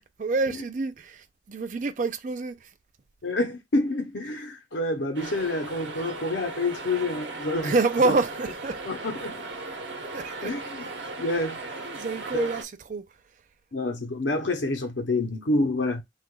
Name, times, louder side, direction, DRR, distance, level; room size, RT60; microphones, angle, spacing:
voice 1, 0.2-2.7 7.6-8.8 10.1-10.5 11.8-13.1, right 3 dB, 45° right, 0.4 m, -27 dB
voice 2, 3.2-7.7 8.0-8.1 8.8-9.5 10.0-10.1 10.4-10.9 11.2-11.6 12.3-12.5 13.7-16.0, left 2 dB, 90° left, 0.8 m, -28 dB
sound 1, 5.2-12.6, right 3 dB, 85° right, 0.8 m, -37 dB
2.9 x 2.4 x 3.7 m
head